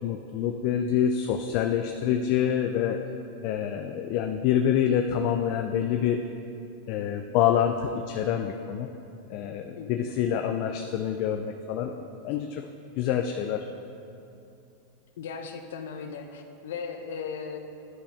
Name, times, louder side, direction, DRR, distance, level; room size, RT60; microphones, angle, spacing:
voice 1, 0.0-3.0 3.4-6.2 6.9-8.9 9.3-11.9 12.2-12.7 13.0-13.7, left 9 dB, 50° left, 5 dB, 0.4 m, -26 dB
voice 2, 9.8-10.1 15.2-17.6, left 6 dB, 80° left, 6 dB, 0.7 m, -37 dB
11.0 x 5.5 x 3.4 m, 2.7 s
supercardioid pair, 145°, 0 cm